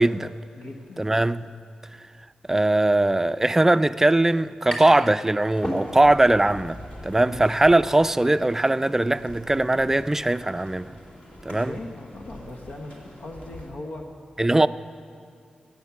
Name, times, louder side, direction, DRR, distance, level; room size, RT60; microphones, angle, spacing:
voice 1, 0.0-0.4 1.0-1.5 2.5-11.0 11.4-11.8 14.4-14.7, right 2 dB, 15° right, 0.4 m, -20 dB
voice 2, 0.6-1.0 7.2-7.4 11.5-14.0 14.5-14.7, left 2 dB, 85° left, 1.1 m, -39 dB
sound 1, 4.7-5.1 5.4-6.3, equal, 40° left, 3.6 m, -33 dB
sound 2, 5.4-13.7, left 1 dB, 60° left, 2.6 m, -45 dB
15.5 x 9.0 x 7.1 m
cardioid pair, 70°, 2 cm